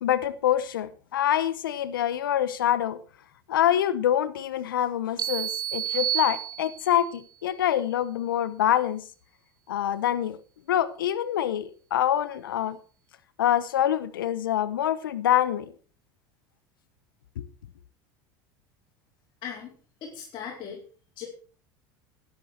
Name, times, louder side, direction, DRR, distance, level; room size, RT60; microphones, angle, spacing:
voice 1, 0.0-3.0 3.5-9.0 9.7-10.4 10.7-12.8 13.4-15.7 17.4-17.5, left 11 dB, 85° left, 1.0 m, -25 dB
sound 1, 5.2-7.1, right 11 dB, 35° right, 0.6 m, -30 dB
voice 2, 19.4-19.7 20.0-20.8 21.2-21.3, left 8 dB, 45° left, 4.4 m, -38 dB
13.0 x 10.0 x 4.4 m
hypercardioid pair, 85°, 11 cm